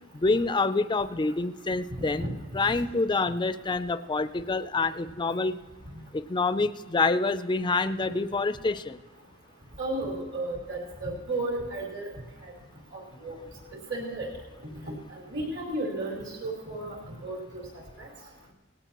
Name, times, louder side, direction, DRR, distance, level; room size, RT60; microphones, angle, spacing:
voice 1, 0.1-2.3 2.5-5.6 6.1-9.0, left 3 dB, 20° left, 12 dB, 0.4 m, -27 dB
voice 2, 9.8-12.1 12.4-12.5 12.9-13.4 13.9-14.3 15.1-17.6 18.0-18.1, right 2 dB, 60° right, -2 dB, 5.0 m, -33 dB
18.5 x 17.0 x 3.0 m, 1.3 s
head